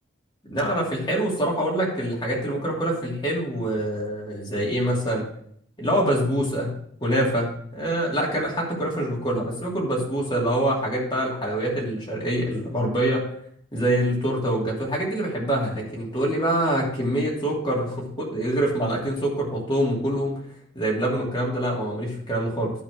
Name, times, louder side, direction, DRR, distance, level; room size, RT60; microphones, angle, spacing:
voice 1, 0.4-5.3 5.8-6.7 7.0-13.2 13.7-20.3 20.7-22.7, right 1 dB, 20° left, -4 dB, 2.7 m, -25 dB
11.5 x 4.1 x 6.3 m, 0.66 s
head